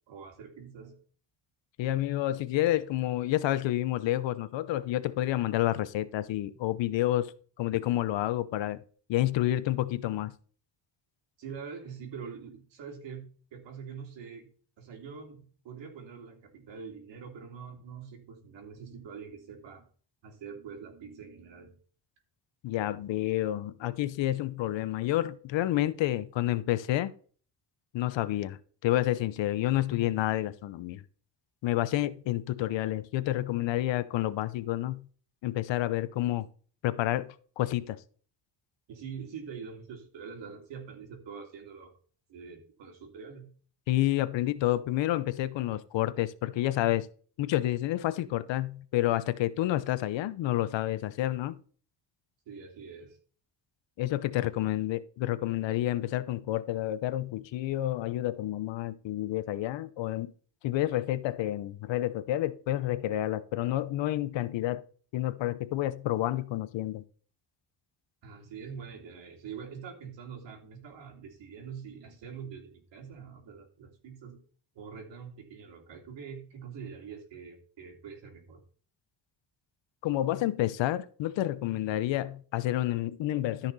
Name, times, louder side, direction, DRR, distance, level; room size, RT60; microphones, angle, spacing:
voice 1, 0.1-1.0 11.4-19.9 20.2-21.8 38.9-41.9 42.3-43.5 52.4-53.2 68.2-74.4 74.7-78.6, right 6 dB, 80° right, 3.2 m, -44 dB
voice 2, 1.8-7.3 7.6-8.8 9.1-10.3 22.6-27.1 27.9-31.0 31.6-35.1 35.4-36.5 36.8-38.0 43.9-47.1 47.4-51.6 54.0-60.3 60.6-64.8 65.1-67.0 80.0-83.7, left 14 dB, 85° left, 0.9 m, -29 dB
13.5 x 5.8 x 4.2 m
cardioid pair, 135°, 43 cm